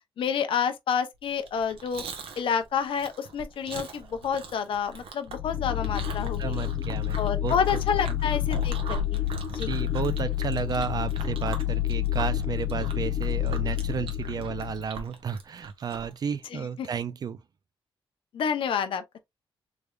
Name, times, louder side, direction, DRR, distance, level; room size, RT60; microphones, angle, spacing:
voice 1, 0.2-2.0 2.4-6.7 7.2-9.2 9.5-9.7 16.5-16.9 18.3-19.2, left 7 dB, 70° left, 0.7 m, -29 dB
Chewing mastication, 1.4-16.2, right 4 dB, 80° right, 1.0 m, -41 dB
sound 1, 5.3-14.9, left 12 dB, 35° left, 0.4 m, -29 dB
voice 2, 6.4-7.5 8.1-8.2 9.7-17.4, right 7 dB, 45° right, 0.3 m, -32 dB
3.4 x 3.3 x 2.3 m
cardioid pair, 115°, 9 cm